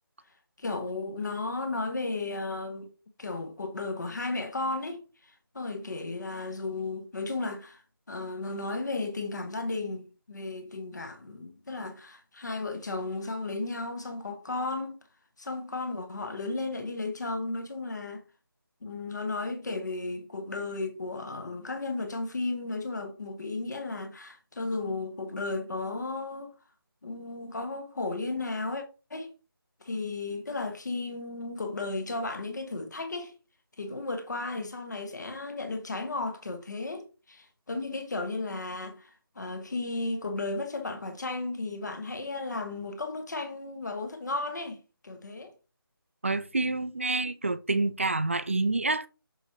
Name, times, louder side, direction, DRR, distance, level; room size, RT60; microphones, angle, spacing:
voice 1, 0.6-2.9 3.2-7.8 8.1-15.0 15.4-18.2 18.8-26.5 27.0-28.8 29.1-29.3 29.8-33.3 33.8-44.8 45.0-45.5, left 3 dB, 50° left, 1.2 m, -34 dB
voice 2, 46.2-49.1, right 3 dB, 30° right, 0.4 m, -28 dB
6.4 x 5.3 x 2.9 m
figure-of-eight pair, 160°, 13 cm